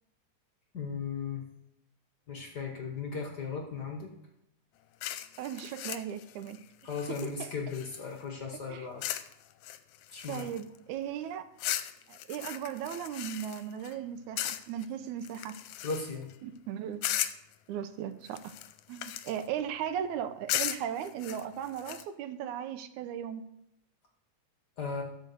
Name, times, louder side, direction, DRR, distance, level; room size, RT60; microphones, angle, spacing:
voice 1, 0.7-1.4 2.3-4.1 6.8-9.0 10.1-10.5 15.8-16.3 24.8-25.0, left 5 dB, 45° left, 1 dB, 1.4 m, -36 dB
sound 1, 5.0-8.2 9.0-9.3 9.6-10.8 11.6-13.9 14.4-14.9 15.2-16.3 17.0-17.5 18.3-19.5 20.5-22.0, left 13 dB, 80° left, 1.9 m, -37 dB
voice 2, 5.4-6.6 7.1-7.5 8.7-8.9 10.3-11.5 12.1-15.5 16.4-17.1 17.7-18.5 18.9-23.4, right 9 dB, 90° right, 10 dB, 2.2 m, -37 dB
13.0 x 5.3 x 6.8 m, 0.84 s
omnidirectional pair, 3.4 m